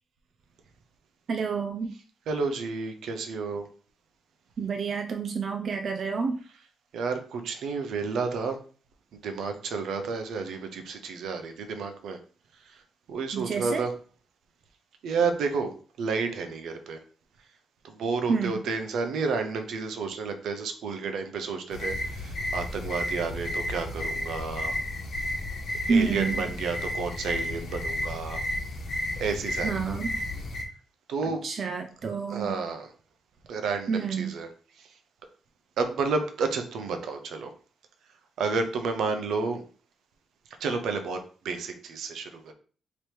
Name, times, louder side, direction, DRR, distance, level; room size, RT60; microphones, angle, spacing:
voice 1, 1.3-1.9 4.6-6.4 13.3-13.8 18.3-18.6 25.9-26.5 29.6-30.1 31.4-32.5 33.9-34.3, right 5 dB, 40° right, 4 dB, 0.4 m, -28 dB
voice 2, 2.3-3.7 6.9-8.6 9.2-12.2 12.7-12.8 13.1-13.9 15.0-15.7 16.0-17.0 17.8-24.8 25.9-28.4 29.2-29.8 31.1-31.4 32.3-32.9 33.5-34.5 35.8-37.5 38.4-39.6 40.6-42.5, right 4 dB, 75° right, 6 dB, 0.7 m, -31 dB
sound 1, 21.7-30.6, left 1 dB, 55° left, 1.0 m, -32 dB
3.4 x 3.0 x 4.4 m, 0.40 s
wide cardioid pair, 165°, 0 cm